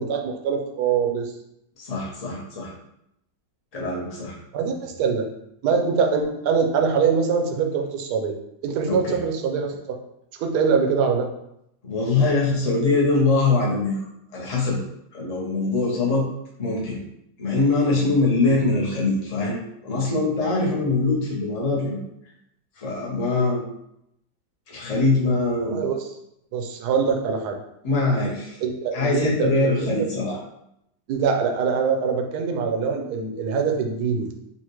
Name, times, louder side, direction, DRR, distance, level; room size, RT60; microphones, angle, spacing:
voice 1, 0.0-1.3 4.5-5.2 5.6-8.3 8.6-10.0 10.4-11.3 25.7-26.1 26.5-27.6 28.6-29.9 31.1-34.3, right 5 dB, 75° right, 4 dB, 1.1 m, -23 dB
voice 2, 1.8-2.7 3.7-4.4 8.8-9.2 11.8-14.0 14.3-14.8 15.1-16.3 16.6-17.0 17.4-19.6 19.8-22.0 22.8-23.6 24.7-25.8 27.8-28.6 28.9-30.4, left 3 dB, 30° left, -3 dB, 0.7 m, -23 dB
5.5 x 2.5 x 3.0 m, 0.79 s
omnidirectional pair, 1.9 m